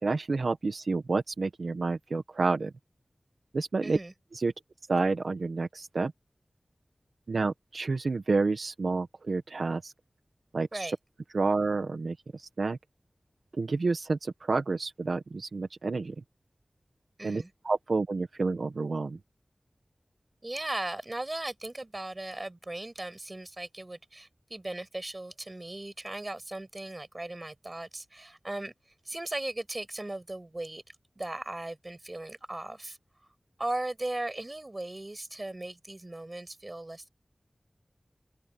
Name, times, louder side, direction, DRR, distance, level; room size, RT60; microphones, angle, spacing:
voice 1, 0.0-2.7 3.5-4.0 4.3-4.5 4.9-6.1 7.3-9.9 10.5-11.0 11.3-12.8 13.5-16.1 17.2-19.2, right 3 dB, 85° right, 1.4 m, -29 dB
voice 2, 3.8-4.1 10.7-10.9 17.2-17.5 20.4-28.7 29.1-30.8 31.2-33.0 33.6-37.1, right 2 dB, 30° right, 7.0 m, -37 dB
open air
wide cardioid pair, 75°, 0 cm